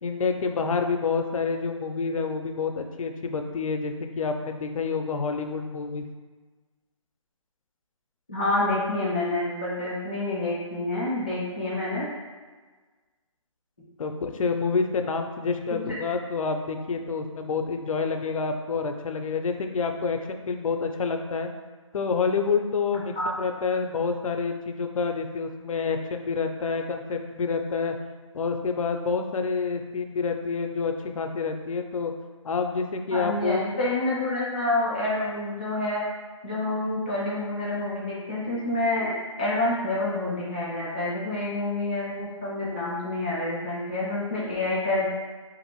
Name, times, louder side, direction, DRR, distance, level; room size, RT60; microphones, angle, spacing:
voice 1, 0.0-6.0 14.0-21.5 21.9-28.0 28.3-32.1 32.4-33.6, left 5 dB, 85° left, 5 dB, 0.4 m, -28 dB
voice 2, 8.3-12.1 15.9-16.0 23.2-23.3 33.1-36.0 36.4-45.1, left 2 dB, 15° left, -10 dB, 0.4 m, -28 dB
2.6 x 2.5 x 3.0 m, 1.4 s
hypercardioid pair, 175°, 17 cm